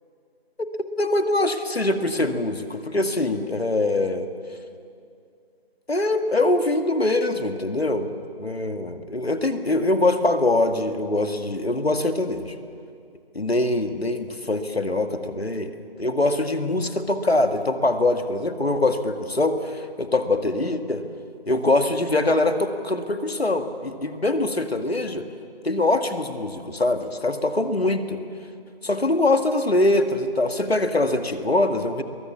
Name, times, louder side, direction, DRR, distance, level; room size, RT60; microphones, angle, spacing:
voice 1, 0.8-4.3 5.9-8.1 8.4-12.5 13.4-21.0 21.5-25.3 25.6-28.2 28.8-32.0, left 2 dB, 80° left, 7 dB, 2.1 m, -23 dB
24.5 x 22.5 x 7.2 m, 2.4 s
figure-of-eight pair, 175°, 31 cm